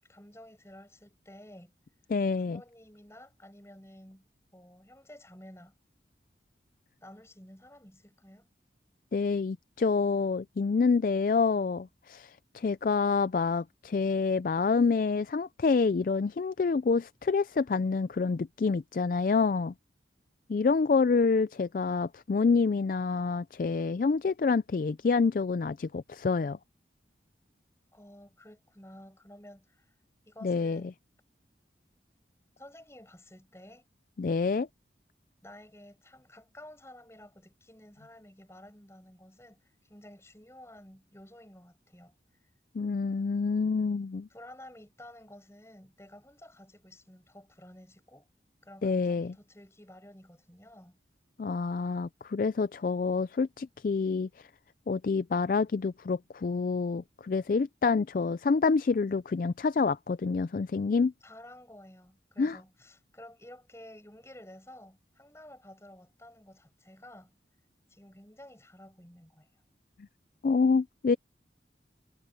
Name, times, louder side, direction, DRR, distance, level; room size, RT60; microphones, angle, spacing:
voice 1, 0.0-1.7 2.4-4.3 4.5-5.8 7.0-8.5 27.9-30.0 30.2-30.9 32.6-33.8 35.4-42.1 42.4-42.5 44.3-48.3 48.6-51.0 61.2-67.3 67.9-69.5, left 1 dB, 15° left, 7.9 m, -52 dB
voice 2, 2.1-2.6 9.1-19.7 20.5-26.6 30.4-30.8 34.2-34.7 42.7-44.3 48.8-49.3 51.4-54.5 54.9-61.1 62.4-62.6 70.4-71.2, left 4 dB, 50° left, 0.3 m, -27 dB
head